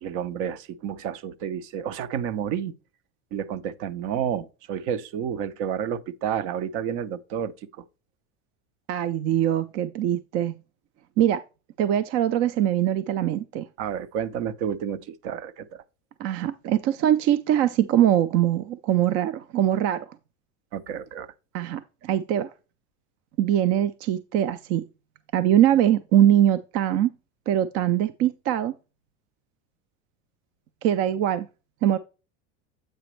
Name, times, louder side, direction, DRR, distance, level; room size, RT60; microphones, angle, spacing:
voice 1, 0.0-2.7 3.3-7.5 13.8-15.8 20.7-21.3, right 8 dB, 60° right, 0.8 m, -30 dB
voice 2, 8.9-10.5 11.2-11.4 11.8-13.7 16.2-20.1 21.5-22.5 23.4-24.8 25.3-27.1 27.5-28.7 30.8-31.5 31.8-32.0, right 11 dB, 45° right, 0.4 m, -22 dB
7.9 x 5.0 x 3.2 m
supercardioid pair, 145°, 34 cm